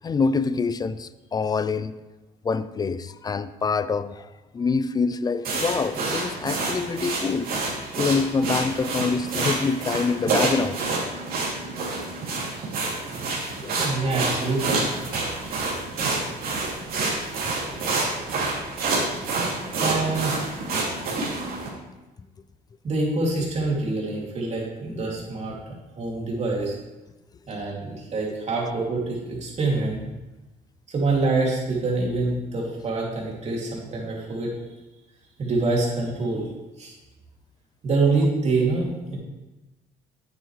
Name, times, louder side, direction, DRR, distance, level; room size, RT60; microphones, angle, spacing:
voice 1, 0.0-2.0 2.4-4.3 4.5-7.5 8.0-10.8 12.3-12.4 13.6-14.0 16.2-16.4, left 4 dB, 25° left, 14 dB, 0.4 m, -26 dB
sound 1, 5.4-21.7, right 3 dB, 60° right, 2.8 m, -28 dB
voice 2, 13.8-14.9 19.8-20.5 22.8-25.5 26.0-26.7 27.5-30.0 30.9-34.5 35.4-36.5 36.8-36.9 37.8-39.2, right 3 dB, 40° right, -3 dB, 2.6 m, -25 dB
8.9 x 8.1 x 3.2 m, 1.1 s
cardioid pair, 110°, 17 cm